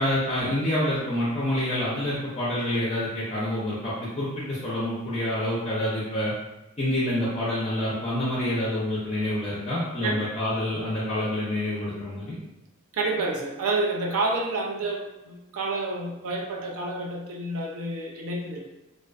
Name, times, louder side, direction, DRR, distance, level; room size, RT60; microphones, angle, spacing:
voice 1, 0.0-6.3 6.8-12.4, left 1 dB, 30° left, -8 dB, 0.4 m, -27 dB
voice 2, 12.9-18.7, right 2 dB, 70° right, 0 dB, 0.4 m, -29 dB
2.4 x 2.3 x 2.2 m, 0.93 s
head